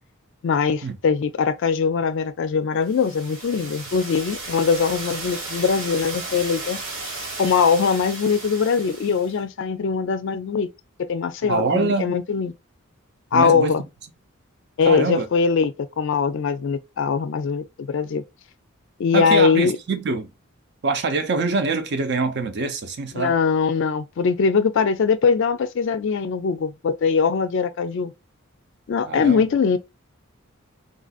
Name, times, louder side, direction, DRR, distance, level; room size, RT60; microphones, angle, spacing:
voice 1, 0.4-6.8 7.4-10.7 11.1-12.5 13.3-13.8 14.8-18.2 19.0-19.8 23.1-28.1 28.9-29.8, left 5 dB, 60° left, 0.3 m, -21 dB
sound 1, 2.8-9.4, right 3 dB, 75° right, 1.3 m, -34 dB
voice 2, 11.4-12.1 13.3-13.8 14.8-15.3 19.1-20.3 20.8-23.4 29.0-29.4, right 3 dB, 55° right, 0.6 m, -24 dB
3.8 x 2.5 x 2.3 m
head